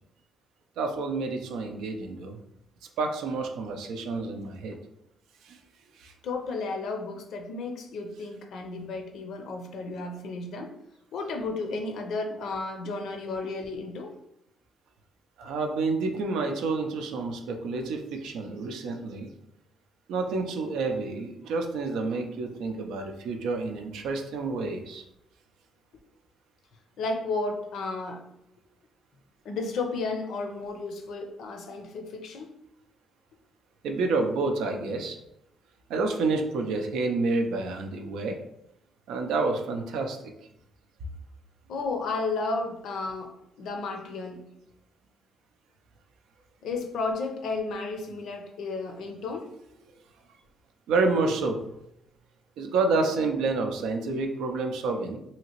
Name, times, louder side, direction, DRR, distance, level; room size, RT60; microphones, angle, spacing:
voice 1, 0.8-2.4 3.0-4.8 5.4-5.6 6.0-6.1 12.8-12.9 13.4-13.5 15.4-19.3 20.1-25.0 33.8-35.2 35.9-38.4 39.1-40.2 50.9-51.6 52.6-55.2, right 3 dB, 85° right, 4 dB, 0.4 m, -29 dB
voice 2, 6.2-10.7 11.1-14.1 27.0-28.2 29.4-32.5 41.7-44.4 46.6-49.5, left 3 dB, 75° left, 4 dB, 0.5 m, -33 dB
2.8 x 2.8 x 2.9 m, 0.80 s
cardioid pair, 90°, 0 cm